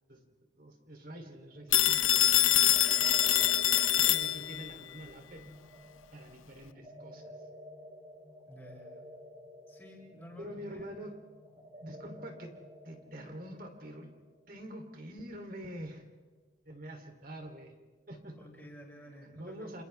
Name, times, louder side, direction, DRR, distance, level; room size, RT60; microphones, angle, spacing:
voice 1, 0.6-3.2 4.0-5.5 6.1-7.3 10.4-11.2 11.8-12.5 12.8-14.1 14.5-16.0 16.6-17.7 18.1-18.4 19.0-19.8, equal, 45° right, 4 dB, 3.3 m, -46 dB
sound 1, 1.5-15.1, equal, 30° right, 6.1 m, -52 dB
Telephone, 1.7-4.7, left 12 dB, 90° left, 0.9 m, -25 dB
voice 2, 8.4-9.0 9.7-10.9 18.3-19.7, equal, 5° left, -10 dB, 6.3 m, -52 dB
30.0 x 28.0 x 3.5 m, 1.4 s
head